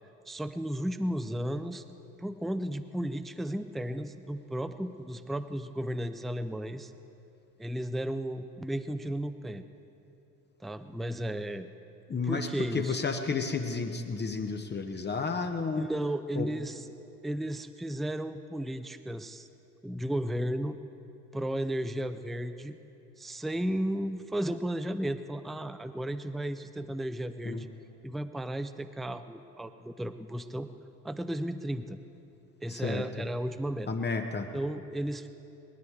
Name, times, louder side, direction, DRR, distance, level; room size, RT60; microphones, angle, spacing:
voice 1, 0.3-1.8 2.2-6.9 7.6-9.6 10.6-11.7 12.1-13.0 15.8-16.9 17.2-19.5 19.8-20.8 21.3-22.8 23.2-27.7 28.0-30.7 31.0-32.0 32.6-33.9 34.5-35.3, right 1 dB, ahead, 11 dB, 0.4 m, -34 dB
voice 2, 12.1-15.9 16.3-16.5 27.4-27.7 32.7-33.1 33.9-34.5, left 4 dB, 20° left, 5 dB, 1.1 m, -32 dB
19.5 x 13.0 x 4.8 m, 2.8 s
figure-of-eight pair, 60°, 45 cm